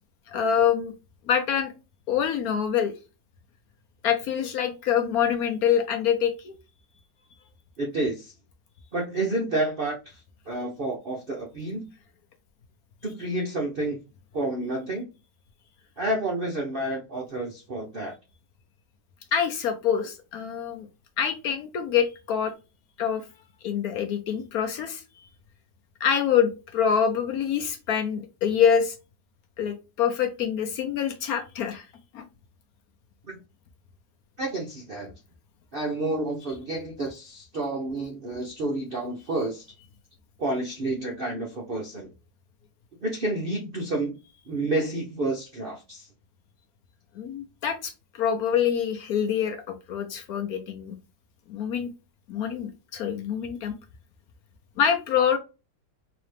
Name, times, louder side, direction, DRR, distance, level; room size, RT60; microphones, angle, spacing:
voice 1, 0.3-0.9 1.3-1.7 2.1-2.9 4.0-6.6 19.3-20.9 21.2-22.5 23.0-23.2 23.6-25.0 26.0-29.0 29.6-31.9 32.1-32.3 47.2-50.9 51.5-51.9 52.3-53.7 54.8-55.4, left 8 dB, 65° left, 7 dB, 1.0 m, -25 dB
voice 2, 7.8-8.3 8.9-11.9 13.0-14.0 14.3-15.1 16.0-18.1 33.3-33.4 34.4-35.1 35.7-39.7 40.4-42.1 43.0-44.2 44.5-46.1, right 2 dB, 55° right, -1 dB, 0.6 m, -30 dB
4.0 x 2.9 x 3.2 m, 0.30 s
omnidirectional pair, 1.9 m